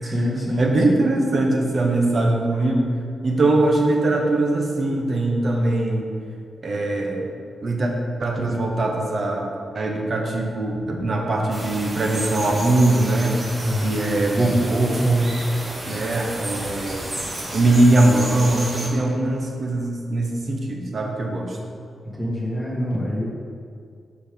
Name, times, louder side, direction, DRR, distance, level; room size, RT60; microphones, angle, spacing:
voice 1, 0.0-0.7 13.6-14.0 22.0-23.3, left 1 dB, ahead, -6 dB, 1.8 m, -26 dB
voice 2, 0.6-2.9 3.2-6.1 6.6-7.3 7.6-7.9 8.2-13.4 13.8-15.3 15.8-17.1 17.5-21.6, right 2 dB, 45° right, 1 dB, 1.1 m, -21 dB
sound 1, 11.5-18.9, right 1 dB, 25° right, 1.4 m, -32 dB
7.0 x 4.8 x 5.2 m, 2.2 s
wide cardioid pair, 125°, 0 cm